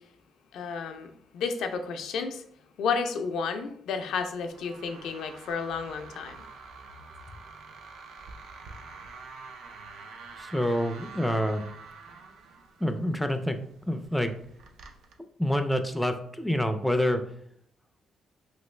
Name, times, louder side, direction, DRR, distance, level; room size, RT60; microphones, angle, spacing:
voice 1, 0.5-2.4 2.8-6.4, left 5 dB, 80° left, 6 dB, 0.4 m, -32 dB
creeking door, 4.1-15.1, right 4 dB, 75° right, 0.4 m, -47 dB
voice 2, 10.4-11.6 12.8-13.6 13.9-14.3 15.4-17.2, equal, 5° left, 7 dB, 0.4 m, -27 dB
3.1 x 2.5 x 3.1 m, 0.67 s
cardioid pair, 90°, 0 cm